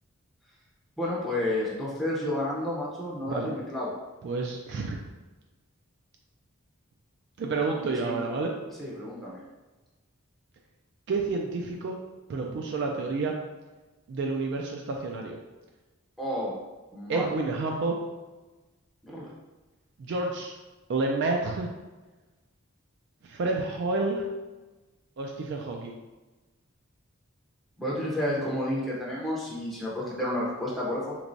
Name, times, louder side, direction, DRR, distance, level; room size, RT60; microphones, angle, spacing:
voice 1, 1.0-3.9 8.0-8.2 8.8-9.4 16.2-16.6 16.9-17.3 19.0-19.3 27.8-31.2, left 1 dB, ahead, -7 dB, 0.5 m, -31 dB
voice 2, 4.2-5.0 7.4-8.5 11.1-12.0 12.3-13.3 14.1-15.4 17.1-18.0 20.0-20.5 20.9-21.7 23.2-24.3 25.2-26.0, right 3 dB, 55° right, 1 dB, 0.3 m, -29 dB
3.3 x 3.1 x 2.6 m, 1.2 s
head